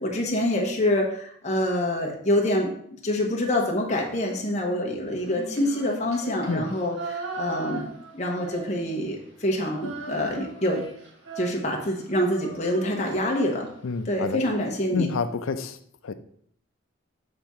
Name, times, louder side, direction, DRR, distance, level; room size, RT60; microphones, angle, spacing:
voice 1, 0.0-2.7 3.0-7.8 8.1-10.8 11.4-13.7 14.1-15.1, left 1 dB, 35° left, 1.0 m, -26 dB
Female singing, 5.2-9.1 9.4-13.7, right 3 dB, 70° right, 1.4 m, -39 dB
voice 2, 13.8-14.4 14.9-15.8 16.0-16.1, left 4 dB, 85° left, 0.5 m, -28 dB
7.6 x 3.6 x 4.2 m
head